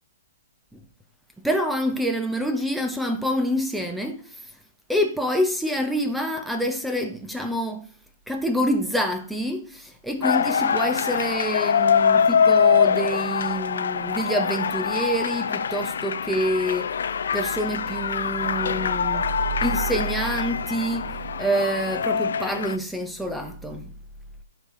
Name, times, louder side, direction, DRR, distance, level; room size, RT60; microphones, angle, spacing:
voice 1, 1.4-4.6 4.9-7.9 8.3-17.0 17.3-23.9, equal, ahead, 0.8 m, -27 dB
sound 1, 10.2-22.8, left 7 dB, 65° left, 0.6 m, -24 dB
12.0 x 4.6 x 4.9 m
hypercardioid pair, 145°, 0 cm